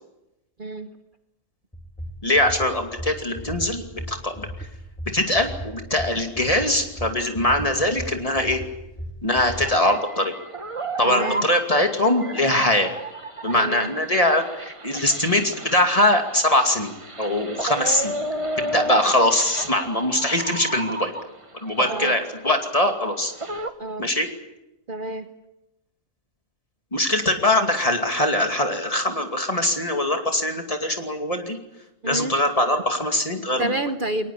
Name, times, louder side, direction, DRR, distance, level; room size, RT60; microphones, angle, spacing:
voice 1, 0.6-0.9 11.0-11.5 13.5-13.9 21.8-22.2 23.8-24.1 24.9-25.3 32.0-32.4 33.6-34.3, right 2 dB, 45° right, 8 dB, 1.1 m, -29 dB
sound 1, 1.7-9.7, equal, 5° left, 1.8 m, -36 dB
voice 2, 2.2-4.7 5.1-8.6 9.2-10.3 11.0-12.9 13.4-18.2 18.6-21.1 21.6-23.3 24.0-24.3 26.9-31.6 32.0-33.7, left 1 dB, 25° left, 4 dB, 2.6 m, -22 dB
sound 2, 9.5-21.4 21.8-23.7, right 2 dB, 25° right, 1.4 m, -33 dB
22.5 x 19.5 x 8.7 m, 0.91 s
omnidirectional pair, 1.3 m